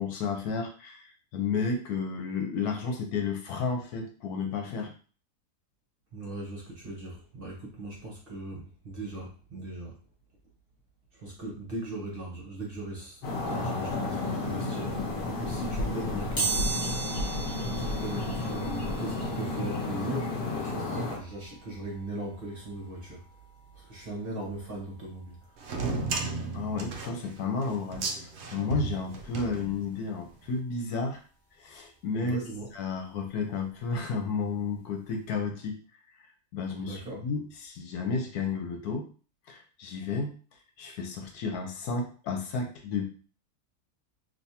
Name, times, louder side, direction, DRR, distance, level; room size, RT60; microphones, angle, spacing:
voice 1, 0.0-4.9 26.5-28.1 28.5-31.2 31.6-32.4 32.7-35.8 36.5-39.1 39.5-40.3 40.8-43.1, left 4 dB, 75° left, 3 dB, 1.2 m, -32 dB
voice 2, 6.1-10.0 11.1-16.8 17.6-23.2 23.7-25.4 32.2-32.7 36.8-37.2, right 2 dB, 40° right, -3 dB, 0.9 m, -39 dB
sound 1, 13.2-21.2, left 2 dB, 50° left, 0.7 m, -32 dB
sound 2, 16.4-27.0 27.5-27.6 28.7-28.8 29.1-31.2 31.6-34.2 34.5-34.7 35.0-35.1, right 5 dB, 15° left, 0.9 m, -39 dB
sound 3, 25.6-30.2, right 3 dB, 65° right, 0.7 m, -34 dB
3.4 x 2.7 x 2.8 m, 0.38 s
omnidirectional pair, 1.7 m